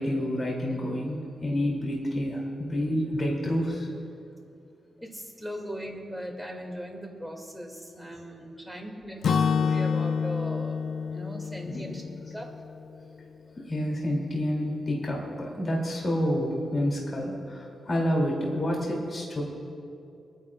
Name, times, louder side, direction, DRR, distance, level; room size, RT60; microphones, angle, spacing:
voice 1, 0.0-3.9 11.6-11.9 13.2-13.3 13.5-19.4, equal, 40° left, -2 dB, 2.8 m, -29 dB
voice 2, 5.0-10.7 11.1-12.0 12.3-12.5, equal, ahead, 0 dB, 2.4 m, -39 dB
Acoustic guitar / Strum, 9.2-13.2, left 6 dB, 75° left, 0.3 m, -28 dB
29.0 x 9.9 x 2.4 m, 2.5 s
cardioid pair, 75°, 0 cm